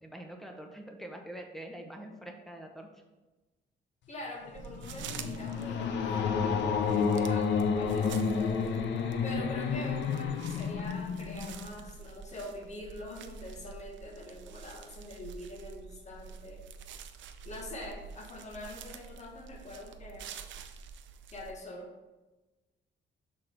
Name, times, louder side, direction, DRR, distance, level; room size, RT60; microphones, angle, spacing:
voice 1, 0.0-3.0, right 1 dB, ahead, 3 dB, 0.9 m, -45 dB
voice 2, 4.1-8.7 9.2-16.6 17.4-20.3 21.3-21.9, left 1 dB, 35° left, 1 dB, 1.3 m, -44 dB
sound 1, 4.5-11.8, left 6 dB, 70° left, 0.6 m, -30 dB
sound 2, 4.5-21.5, right 6 dB, 75° right, 0.5 m, -48 dB
6.5 x 3.8 x 4.4 m, 1.1 s
cardioid pair, 115°, 19 cm